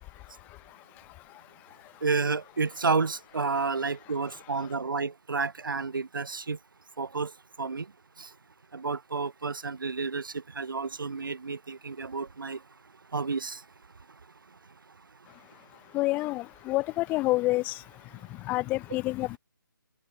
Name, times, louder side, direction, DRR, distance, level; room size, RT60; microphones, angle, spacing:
voice 1, 2.0-6.6 7.0-7.3 7.6-7.9 8.2-8.3 8.7-12.6 13.1-13.6, right 4 dB, 70° right, 5.9 m, -30 dB
voice 2, 15.9-17.7 18.5-19.4, left 19 dB, 15° left, 1.1 m, -28 dB
open air
figure-of-eight pair, 155°, 12 cm